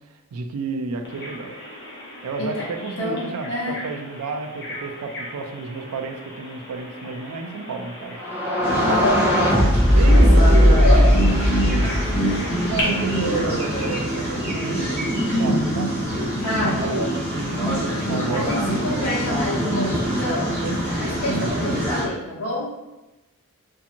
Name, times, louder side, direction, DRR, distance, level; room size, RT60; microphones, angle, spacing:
voice 1, 0.3-1.5 2.2-8.2 8.8-9.2 9.9-10.8 12.6-15.9 16.8-17.1 17.3-18.5 19.8-20.2 20.6-20.8 21.3-21.8, right 4 dB, 80° right, 5 dB, 0.4 m, -30 dB
Bird vocalization bird call bird song, 1.1-12.8, left 1 dB, 50° left, 0.7 m, -38 dB
voice 2, 3.0-3.8 8.8-9.2 10.0-10.3 10.5-11.4 16.4-17.2 17.5-17.9 18.3-20.5 21.0-22.7, left 1 dB, 85° left, -5 dB, 1.0 m, -27 dB
sound 1, 8.2-13.0, equal, 10° right, 0.4 m, -17 dB
sound 2, 8.6-22.0, equal, 10° left, 1.1 m, -25 dB
2.7 x 2.6 x 2.5 m, 1.0 s
head